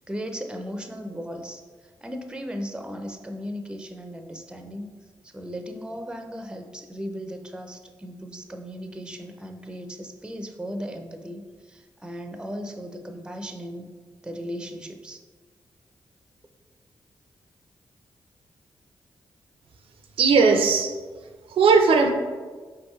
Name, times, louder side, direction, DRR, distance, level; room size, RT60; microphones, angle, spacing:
voice 1, 0.1-4.9 5.2-13.9 14.2-15.2, equal, 10° right, 5 dB, 0.5 m, -36 dB
voice 2, 20.2-20.9 21.5-22.1, right 4 dB, 80° right, 5 dB, 0.5 m, -18 dB
4.7 x 3.5 x 3.1 m, 1.4 s
cardioid pair, 55°, 9 cm